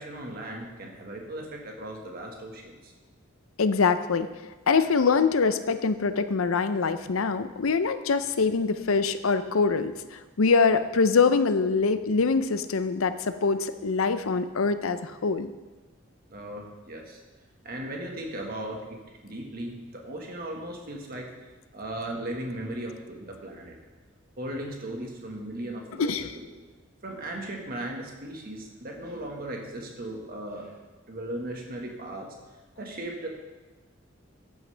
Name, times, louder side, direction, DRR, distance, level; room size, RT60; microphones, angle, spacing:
voice 1, 0.0-2.9 16.3-17.2 17.6-21.3 21.7-23.8 24.4-26.5 27.0-30.8 31.1-32.3 32.8-33.3, right 1 dB, 45° right, 1 dB, 1.6 m, -37 dB
voice 2, 3.6-4.3 4.7-15.5 26.0-26.3, left 4 dB, 85° left, 11 dB, 0.6 m, -24 dB
13.5 x 9.0 x 3.4 m, 1.2 s
head